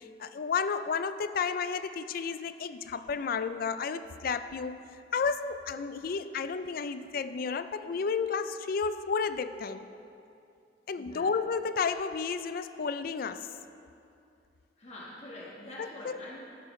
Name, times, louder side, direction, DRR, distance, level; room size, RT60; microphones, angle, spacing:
voice 1, 0.0-9.9 10.9-13.5 15.8-16.2, left 5 dB, 55° left, 12 dB, 0.4 m, -32 dB
voice 2, 14.8-16.4, left 1 dB, 40° left, -5 dB, 1.4 m, -45 dB
14.0 x 8.4 x 3.2 m, 2.6 s
head